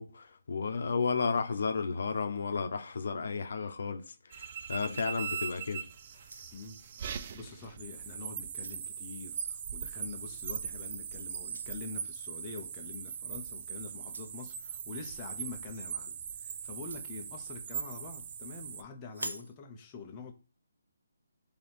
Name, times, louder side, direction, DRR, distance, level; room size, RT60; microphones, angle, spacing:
voice 1, 0.0-5.8, left 5 dB, 65° left, 0.7 m, -33 dB
sound 1, 4.3-18.8, right 7 dB, 40° right, 0.4 m, -40 dB
sound 2, 4.5-5.7 6.1-6.8 7.6-7.8 8.2-8.9 10.3-10.5 11.4-11.7 13.0-13.2 14.0-14.4 16.6-17.1 19.1-19.5, right 2 dB, 85° right, 0.7 m, -46 dB
voice 2, 6.5-20.3, left 4 dB, 20° left, 0.7 m, -45 dB
3.3 x 2.9 x 4.2 m
hypercardioid pair, 160°, 0 cm